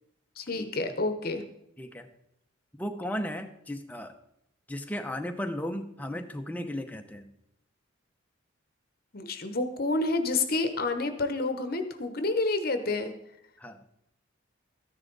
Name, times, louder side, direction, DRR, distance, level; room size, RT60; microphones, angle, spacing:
voice 1, 0.4-1.4 9.1-13.1, left 3 dB, 45° left, 8 dB, 0.9 m, -29 dB
voice 2, 1.8-2.1 2.8-4.1 4.7-7.3 13.6-13.8, left 1 dB, 5° left, 5 dB, 0.8 m, -35 dB
13.5 x 10.5 x 4.0 m, 0.79 s
head